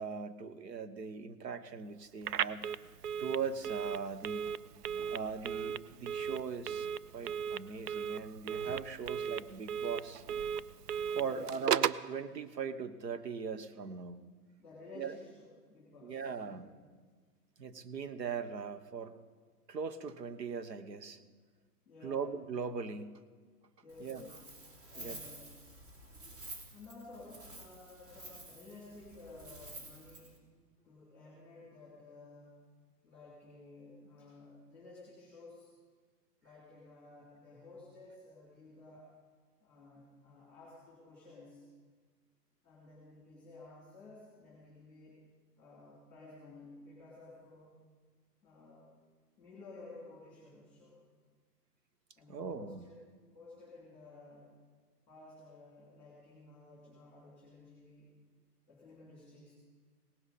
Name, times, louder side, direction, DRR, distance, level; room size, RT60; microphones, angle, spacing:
voice 1, 0.0-2.7 3.2-4.5 5.1-6.9 7.1-10.2 11.1-14.2 15.0-15.2 16.0-16.7 17.6-19.1 19.7-21.2 22.0-23.2 24.0-24.2 25.0-25.2 52.3-52.8, right 6 dB, 85° right, 11 dB, 1.3 m, -40 dB
Telephone, 2.2-12.1, right 8 dB, 70° right, 0.6 m, -36 dB
voice 2, 11.1-11.5 14.6-16.7 21.9-22.3 23.8-25.5 26.7-30.4 30.8-32.6 33.0-35.7 36.4-39.1 39.6-41.6 42.6-45.3 45.6-47.7 48.4-48.9 49.4-51.0 52.2-53.0 53.3-54.5 55.1-58.1 58.7-59.5, left 2 dB, 5° left, -5 dB, 2.8 m, -54 dB
Wind, 23.9-30.4, right 1 dB, 45° right, 3.3 m, -50 dB
18.0 x 16.5 x 4.2 m, 1.5 s
hypercardioid pair, 170°, 48 cm